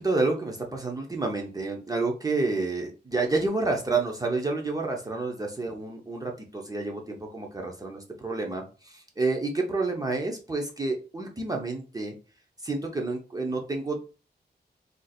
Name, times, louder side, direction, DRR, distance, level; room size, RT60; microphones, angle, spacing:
voice 1, 0.0-12.1 12.6-14.1, right 3 dB, 20° right, 1 dB, 0.5 m, -29 dB
2.5 x 2.4 x 4.0 m, 0.34 s
wide cardioid pair, 135°, 17 cm